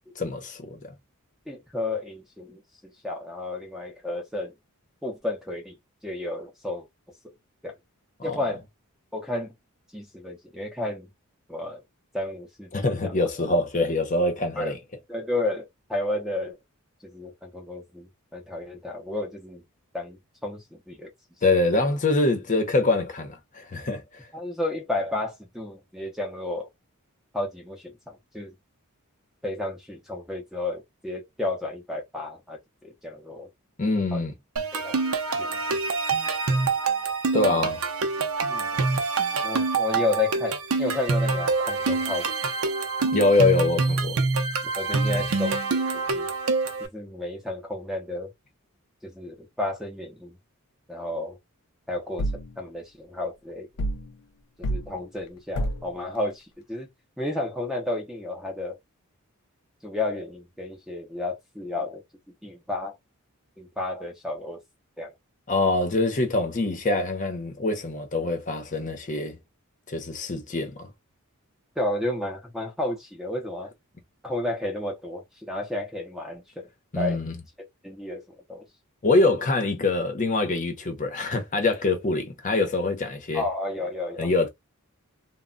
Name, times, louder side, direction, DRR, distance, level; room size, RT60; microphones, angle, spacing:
voice 1, 0.2-0.8 8.3-8.4 12.7-14.8 21.4-24.2 33.8-34.3 37.3-37.8 43.1-44.2 45.1-45.2 65.5-69.4 69.9-70.9 76.9-77.3 79.0-83.4 84.2-84.5, left 2 dB, 35° left, 0.7 m, -24 dB
voice 2, 1.5-4.5 5.0-5.8 6.0-6.9 7.6-7.7 8.2-8.6 9.1-9.5 9.9-11.1 11.5-11.8 12.1-12.7 13.0-13.1 14.6-14.7 15.1-16.6 17.0-19.6 19.9-21.1 24.3-26.7 27.3-28.5 29.4-33.5 34.1-34.2 34.7-35.0 35.4-35.6 37.3-37.6 38.5-38.7 39.4-42.3 44.8-45.6 45.9-46.3 46.8-48.3 49.0-50.3 50.9-51.4 51.9-53.7 54.7-56.9 57.2-58.8 59.8-62.0 62.4-62.9 63.6-64.6 65.0-65.1 71.8-73.7 74.2-76.7 76.9-77.2 77.8-78.2 78.5-78.6 83.3-84.3, left 2 dB, ahead, 0.6 m, -32 dB
sound 1, 34.6-46.9, right 4 dB, 70° right, 0.6 m, -26 dB
sound 2, 52.2-52.5 53.8-54.1 54.6-54.9 55.5-55.9, equal, 90° left, 0.5 m, -28 dB
2.2 x 2.1 x 3.7 m
head